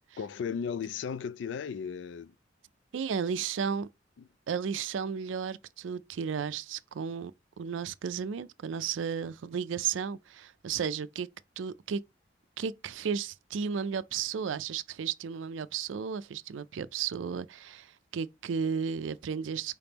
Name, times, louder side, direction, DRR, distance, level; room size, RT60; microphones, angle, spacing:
voice 1, 0.2-2.3 4.2-4.3, left 6 dB, 75° left, 0.3 m, -35 dB
voice 2, 2.9-3.9 4.5-11.3 11.6-12.0 12.6-19.8, right 6 dB, 90° right, 0.4 m, -34 dB
4.9 x 3.5 x 2.8 m
head